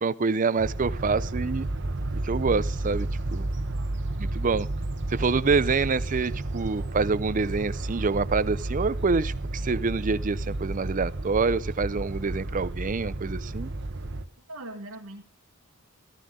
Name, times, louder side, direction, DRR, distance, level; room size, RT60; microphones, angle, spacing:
voice 1, 0.0-1.7 2.2-3.5 4.2-4.7 5.1-13.7, right 4 dB, 40° right, 18 dB, 0.5 m, -26 dB
sound 1, 0.6-14.2, right 2 dB, 55° right, 1.0 m, -32 dB
voice 2, 3.6-4.6 14.5-15.2, right 1 dB, 80° right, 1 dB, 1.5 m, -43 dB
14.0 x 14.0 x 3.7 m, 0.35 s
head